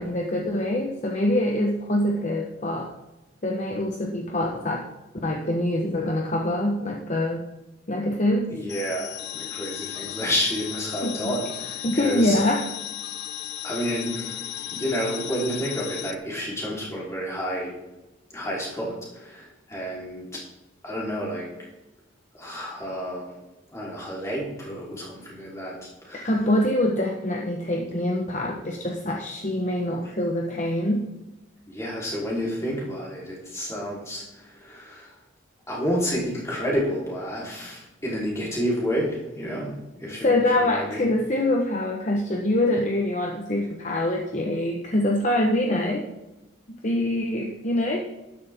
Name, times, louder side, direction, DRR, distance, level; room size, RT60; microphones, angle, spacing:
voice 1, 0.0-2.9 3.4-4.8 5.2-7.4 7.9-8.5 11.0-11.4 11.8-12.6 26.2-31.1 40.2-46.0 46.8-48.0, left 1 dB, 35° left, 1 dB, 1.0 m, -24 dB
voice 2, 8.5-12.4 13.6-17.7 18.3-20.4 20.8-21.5 22.4-23.3 23.7-26.3 30.0-30.1 30.5-30.6 31.7-35.1 35.7-41.1, equal, 15° left, -5 dB, 3.6 m, -30 dB
sound 1, 8.7-16.1, left 12 dB, 55° left, 0.7 m, -35 dB
13.0 x 11.0 x 3.6 m, 1.0 s
head